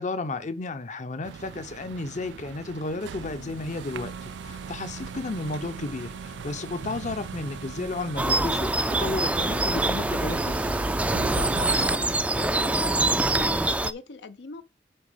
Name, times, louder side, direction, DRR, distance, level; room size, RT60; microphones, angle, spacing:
voice 1, 0.0-10.6, left 3 dB, 45° left, 0.7 m, -33 dB
sound 1, 1.2-12.0, right 7 dB, 85° right, 0.3 m, -39 dB
sound 2, 3.2-12.2, left 2 dB, 60° left, 1.7 m, -49 dB
sound 3, 8.2-13.9, right 2 dB, 10° right, 0.3 m, -25 dB
voice 2, 11.2-14.6, left 4 dB, 80° left, 0.6 m, -42 dB
9.0 x 3.9 x 5.0 m
head